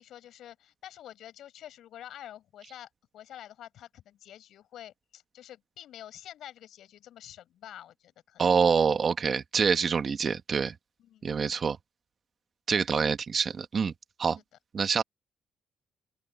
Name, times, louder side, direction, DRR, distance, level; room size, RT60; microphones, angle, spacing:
voice 1, 0.0-8.4 11.0-11.3 12.7-13.1, left 11 dB, 75° left, 7.7 m, -48 dB
voice 2, 8.4-10.7 11.2-11.8 12.7-13.9 14.2-14.4 14.7-15.0, right 6 dB, 45° right, 1.5 m, -26 dB
cardioid pair, 90°, 0 cm